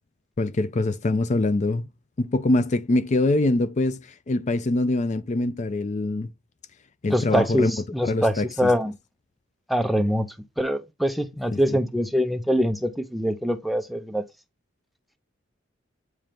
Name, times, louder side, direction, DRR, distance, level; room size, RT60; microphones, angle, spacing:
voice 1, 0.4-1.9 2.2-6.3 7.0-7.8 8.0-8.7 11.5-11.8, left 2 dB, 40° left, 0.5 m, -24 dB
voice 2, 7.1-8.9 9.7-10.3 10.6-14.2, equal, ahead, 0.6 m, -24 dB
8.9 x 3.3 x 5.1 m
head